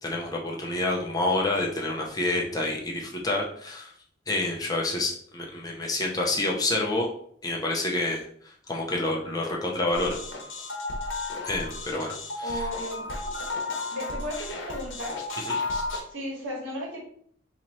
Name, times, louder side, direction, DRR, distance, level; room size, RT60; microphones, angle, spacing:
voice 1, 0.0-3.9 4.3-7.1 7.4-10.2 11.4-12.7 15.5-15.6, left 2 dB, 20° left, -1 dB, 0.6 m, -28 dB
sound 1, 9.9-16.0, left 3 dB, 75° left, 0.9 m, -33 dB
voice 2, 12.4-13.1 13.9-15.2 16.1-17.0, equal, 75° right, -3 dB, 1.5 m, -35 dB
4.0 x 3.0 x 3.0 m, 0.63 s
head